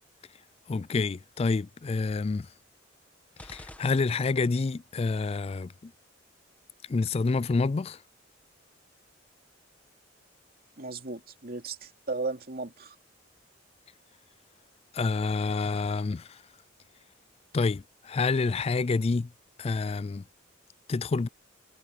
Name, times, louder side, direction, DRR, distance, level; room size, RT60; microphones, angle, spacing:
voice 1, 0.7-2.5 3.4-5.9 6.9-8.0 14.9-16.2 17.5-19.3 19.6-20.2 20.9-21.3, left 4 dB, 30° left, 0.3 m, -28 dB
sound 1, 3.4-4.7, left 1 dB, 10° left, 1.9 m, -49 dB
voice 2, 10.8-12.9, right 3 dB, 50° right, 2.8 m, -35 dB
head